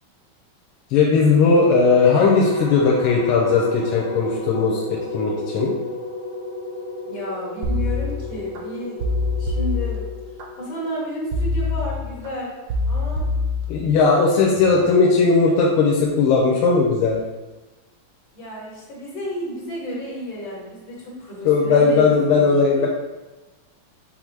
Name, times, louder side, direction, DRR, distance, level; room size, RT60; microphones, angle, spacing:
voice 1, 0.9-5.7 13.7-17.2 21.4-22.9, left 4 dB, 90° left, -2 dB, 1.5 m, -17 dB
sound 1, 2.0-11.3, left 2 dB, 45° left, 1.3 m, -33 dB
voice 2, 7.1-9.0 9.4-10.1 10.6-12.5 12.8-13.3 18.3-22.9, equal, 65° left, -5 dB, 2.1 m, -32 dB
sound 2, 7.6-8.6 9.0-10.5 11.3-12.3 12.7-14.1 14.6-14.9, left 3 dB, 75° right, 1.4 m, -25 dB
5.6 x 2.0 x 4.6 m, 1.2 s
omnidirectional pair, 2.2 m